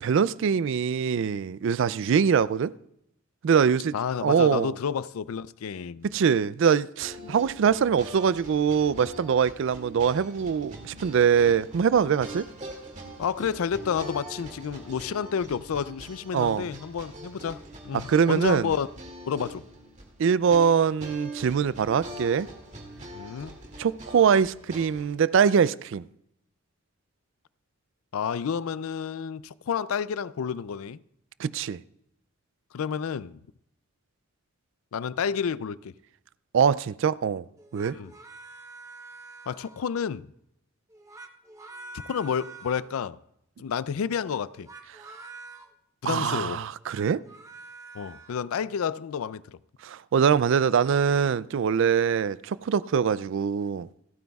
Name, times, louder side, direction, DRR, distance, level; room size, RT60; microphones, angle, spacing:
voice 1, 0.0-2.7 3.4-3.9 4.2-4.7 6.1-12.5 16.3-16.7 17.9-18.7 20.2-22.5 23.8-26.1 31.4-31.8 36.5-37.4 37.7-38.0 44.9-45.1 46.1-47.2 49.8-53.9, right 7 dB, 60° right, 0.3 m, -23 dB
voice 2, 3.9-6.1 7.2-7.4 13.2-18.9 19.3-19.6 23.1-23.6 28.1-31.0 32.7-33.4 34.9-35.9 37.9-38.1 39.5-40.3 42.1-43.2 43.6-44.7 46.0-46.6 47.9-49.6, left 7 dB, 85° left, 0.4 m, -30 dB
sound 1, 7.0-25.1, right 1 dB, 35° right, 2.2 m, -43 dB
sound 2, 37.6-40.0 40.9-43.0 44.5-45.7 46.7-48.4, right 3 dB, 15° right, 0.8 m, -46 dB
27.5 x 9.3 x 2.3 m
head